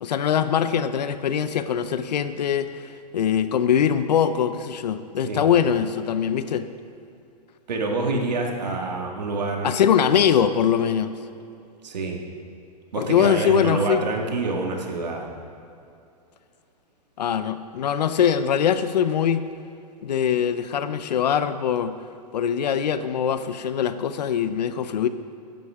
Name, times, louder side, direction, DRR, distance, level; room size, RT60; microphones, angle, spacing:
voice 1, 0.0-6.7 9.6-11.1 13.0-14.0 17.2-19.4 20.0-21.9 22.3-25.1, left 8 dB, 85° left, 12 dB, 0.7 m, -22 dB
voice 2, 7.7-9.7 11.8-12.2 12.9-15.3, right 3 dB, 90° right, 1 dB, 2.0 m, -27 dB
14.5 x 10.5 x 3.7 m, 2.6 s
hypercardioid pair, 140°, 21 cm